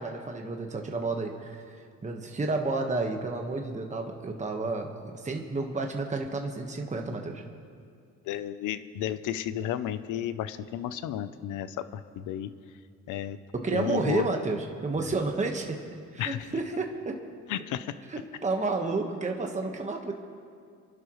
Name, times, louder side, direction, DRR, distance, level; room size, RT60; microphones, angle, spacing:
voice 1, 0.0-7.4 13.5-15.8 16.1-17.2 18.1-20.1, right 3 dB, 25° right, 2 dB, 1.3 m, -31 dB
voice 2, 8.3-12.5 13.1-13.4 13.7-14.3 16.2-16.4 17.5-17.9, left 11 dB, 90° left, 13 dB, 0.7 m, -32 dB
29.0 x 11.5 x 3.1 m, 2.2 s
cardioid pair, 90°, 30 cm